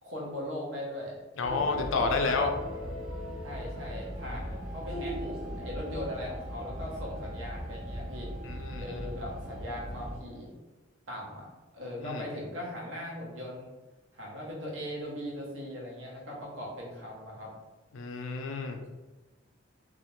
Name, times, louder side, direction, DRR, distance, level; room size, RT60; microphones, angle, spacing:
voice 1, 0.0-2.4 3.4-5.2 5.6-8.3 8.8-10.6 11.1-13.7 14.1-17.5, left 1 dB, 70° right, -3 dB, 0.8 m, -39 dB
voice 2, 1.4-2.5 8.4-9.0 12.0-12.2 17.9-18.8, left 4 dB, 65° left, 4 dB, 0.4 m, -30 dB
sound 1, 1.4-10.2, equal, 5° right, 0.4 m, -38 dB
2.4 x 2.0 x 3.0 m, 1.2 s
head